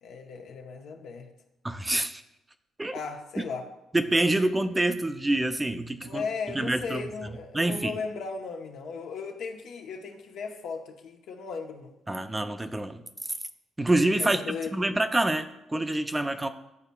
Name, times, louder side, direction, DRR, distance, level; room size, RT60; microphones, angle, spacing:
voice 1, 0.0-1.3 2.9-3.7 4.3-4.4 6.0-11.9 14.2-14.7, left 5 dB, 75° left, 3 dB, 0.8 m, -36 dB
voice 2, 1.6-2.2 2.8-2.9 3.9-6.2 6.5-7.0 7.5-8.0 12.1-13.0 13.8-16.5, right 1 dB, 15° right, 8 dB, 0.4 m, -26 dB
10.5 x 4.1 x 2.2 m, 0.90 s
cardioid pair, 90°, 0 cm